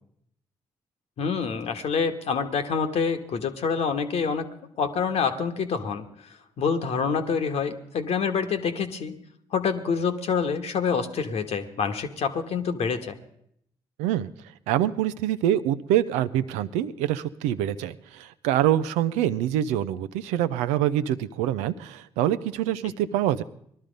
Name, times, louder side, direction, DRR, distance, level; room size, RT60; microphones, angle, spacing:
voice 1, 1.2-4.5 4.8-6.0 6.6-9.2 9.5-13.2, left 6 dB, 60° left, 6 dB, 1.2 m, -26 dB
voice 2, 14.7-23.4, right 12 dB, 80° right, 13 dB, 0.6 m, -25 dB
19.0 x 12.5 x 5.2 m, 0.72 s
hypercardioid pair, 45°, 12 cm